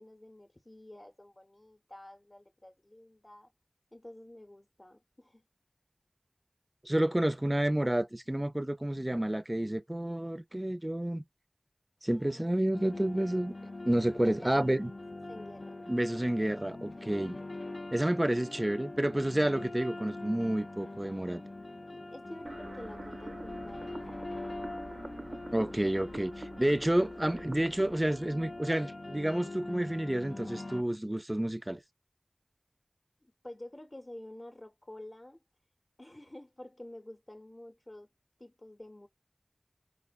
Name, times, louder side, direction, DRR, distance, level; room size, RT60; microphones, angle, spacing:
voice 1, 0.0-3.5 3.9-5.4 12.1-12.8 14.2-14.6 15.3-15.8 21.9-23.9 33.4-35.4 36.0-38.1 38.4-39.1, left 1 dB, 45° left, 0.6 m, -49 dB
voice 2, 6.8-11.2 12.0-14.9 15.9-17.4 17.9-21.4 25.5-31.8, right 1 dB, 30° right, 0.4 m, -30 dB
sound 1, 12.7-30.8, left 2 dB, 85° left, 0.5 m, -43 dB
sound 2, 22.5-29.5, right 2 dB, 90° right, 0.5 m, -47 dB
5.0 x 2.0 x 2.3 m
wide cardioid pair, 40°, 0 cm